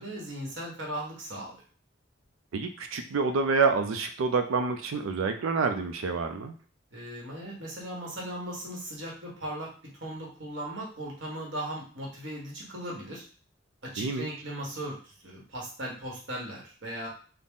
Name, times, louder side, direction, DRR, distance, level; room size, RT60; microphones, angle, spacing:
voice 1, 0.0-1.6 6.9-9.7 10.0-13.2 13.8-17.1, right 1 dB, 60° right, -2 dB, 1.3 m, -38 dB
voice 2, 2.5-6.5 14.0-14.4, right 4 dB, 85° right, 7 dB, 0.4 m, -28 dB
4.0 x 2.0 x 3.6 m, 0.41 s
head